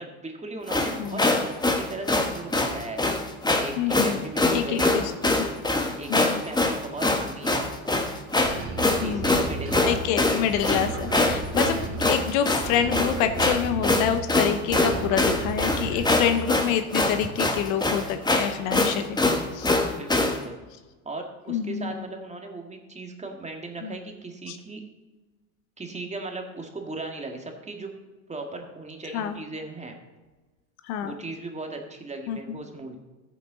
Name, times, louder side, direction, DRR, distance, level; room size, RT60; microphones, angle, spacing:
voice 1, 0.0-3.0 3.6-5.1 6.0-7.7 8.8-10.5 19.9-20.6 21.1-24.8 25.8-27.9 28.3-30.0 31.0-33.0, right 2 dB, 15° right, 3 dB, 2.0 m, -37 dB
sound 1, 0.7-20.4, left 2 dB, 10° left, 1.4 m, -24 dB
voice 2, 1.0-1.4 3.8-4.2 4.5-5.5 6.1-6.4 9.0-9.4 9.8-19.2 19.5-19.7 21.5-22.0 23.8-24.0 24.5-24.6 29.1-29.4 30.8-31.1 32.3-32.6, left 9 dB, 70° left, 9 dB, 1.1 m, -27 dB
sound 2, 8.4-10.2 10.5-12.3 12.6-14.3 14.7-16.4, right 3 dB, 30° right, 2.2 m, -34 dB
14.0 x 7.2 x 4.0 m, 1.2 s
hypercardioid pair, 85°, 42 cm